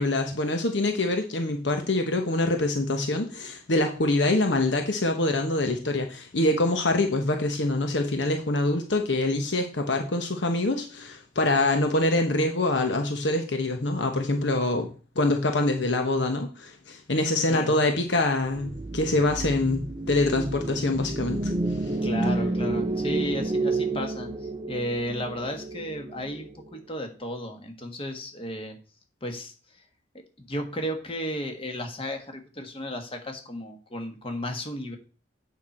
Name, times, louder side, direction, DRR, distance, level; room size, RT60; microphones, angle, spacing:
voice 1, 0.0-14.9 15.2-19.8 20.1-21.5, left 2 dB, 80° left, 5 dB, 1.0 m, -25 dB
sound 1, 18.4-26.8, right 2 dB, 25° right, 0.5 m, -30 dB
voice 2, 22.0-28.8 29.2-29.5 30.5-35.0, equal, 30° left, 4 dB, 1.5 m, -34 dB
8.5 x 5.8 x 4.3 m, 0.35 s
head